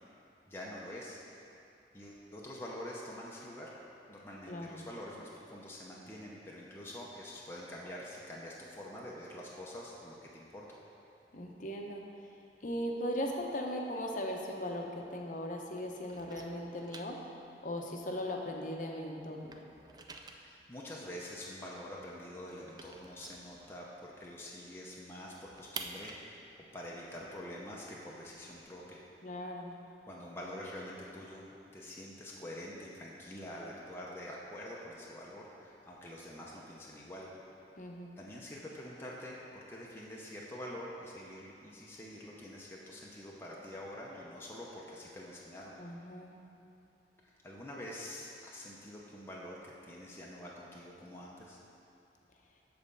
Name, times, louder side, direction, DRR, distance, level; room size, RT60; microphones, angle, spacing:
voice 1, 0.5-1.2 1.9-3.7 4.1-10.7 20.2-26.4 26.7-29.0 30.1-31.5 31.7-37.3 38.2-45.8 47.2-51.6, left 1 dB, 15° left, -5 dB, 0.7 m, -46 dB
voice 2, 4.5-4.8 11.3-12.0 12.6-17.2 17.6-19.6 29.2-29.8 37.8-38.1 45.8-46.4, equal, 45° left, 1 dB, 0.8 m, -38 dB
sound 1, 14.0-15.5 15.7-18.9 19.2-24.3 24.6-24.7 25.0-28.7, right 4 dB, 25° right, 0.4 m, -50 dB
7.4 x 4.2 x 6.7 m, 2.8 s
head